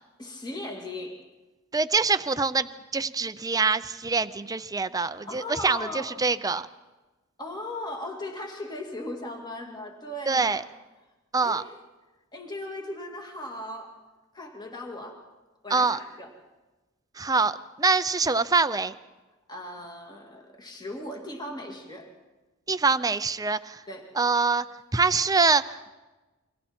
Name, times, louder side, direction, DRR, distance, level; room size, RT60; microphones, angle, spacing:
voice 1, 0.2-1.2 5.3-6.1 7.4-10.6 11.4-11.8 12.3-14.0 14.3-15.2 15.6-16.3 19.5-22.1 23.9-24.1, left 1 dB, 20° left, 1 dB, 2.4 m, -38 dB
voice 2, 1.7-2.7 2.9-5.8 6.2-6.7 10.3-10.6 11.3-11.6 15.7-16.0 17.2-17.5 17.8-18.9 22.7-23.8 24.2-24.6 24.9-25.6, right 4 dB, 15° right, 11 dB, 0.6 m, -24 dB
29.5 x 23.5 x 4.4 m, 1.2 s
head